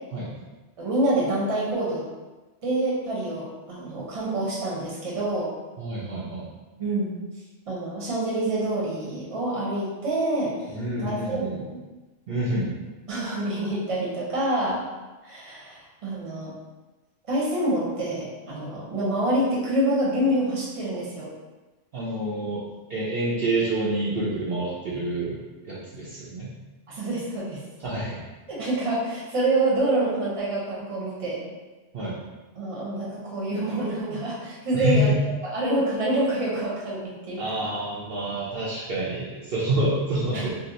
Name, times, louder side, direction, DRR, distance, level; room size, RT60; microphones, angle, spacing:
voice 1, 0.8-2.0 2.6-5.5 6.8-7.1 7.7-10.5 11.0-11.8 13.1-14.8 15.2-16.5 17.3-21.3 26.9-27.6 28.5-31.5 32.6-35.1 35.5-37.7 40.3-40.4, right 1 dB, 30° right, -6 dB, 0.8 m, -27 dB
voice 2, 5.8-6.5 10.7-11.6 12.3-12.7 21.9-22.6 22.9-25.4 25.7-26.5 27.8-28.2 31.9-32.2 34.7-35.2 37.4-40.5, right 1 dB, 60° right, -7 dB, 0.7 m, -27 dB
2.7 x 2.1 x 3.9 m, 1.2 s
omnidirectional pair, 1.2 m